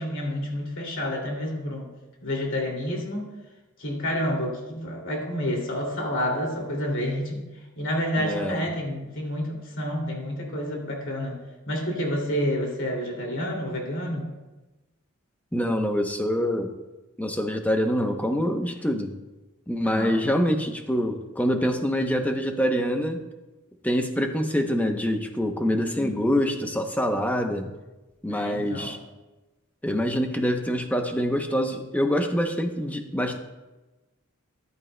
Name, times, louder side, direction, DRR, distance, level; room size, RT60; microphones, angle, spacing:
voice 1, 0.0-1.9 2.2-3.2 3.8-7.4 7.8-11.4 11.7-14.3 19.8-20.1 25.7-26.2 28.3-28.9, equal, 60° left, -1 dB, 2.5 m, -29 dB
voice 2, 8.2-8.6 15.5-16.7 17.2-19.1 19.7-23.2 23.8-27.7 28.2-29.0 29.8-33.4, equal, 5° left, 5 dB, 0.7 m, -25 dB
14.0 x 11.0 x 2.2 m, 1.1 s
head